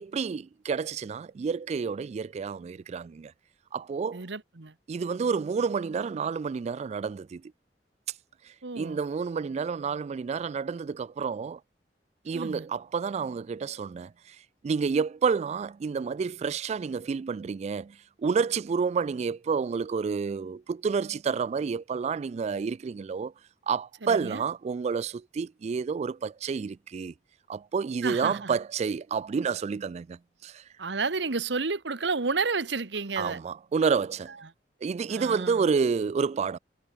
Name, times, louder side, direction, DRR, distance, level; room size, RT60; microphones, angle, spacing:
voice 1, 0.0-3.3 3.7-4.2 4.9-7.4 8.8-11.6 12.3-14.4 14.6-23.3 23.7-27.1 27.5-30.6 33.2-34.3 34.8-36.6, right 5 dB, 40° right, 0.3 m, -29 dB
voice 2, 4.1-4.7 8.6-9.0 12.3-12.7 24.0-24.4 28.0-28.6 30.8-33.4 35.1-35.7, right 4 dB, 85° right, 1.3 m, -31 dB
head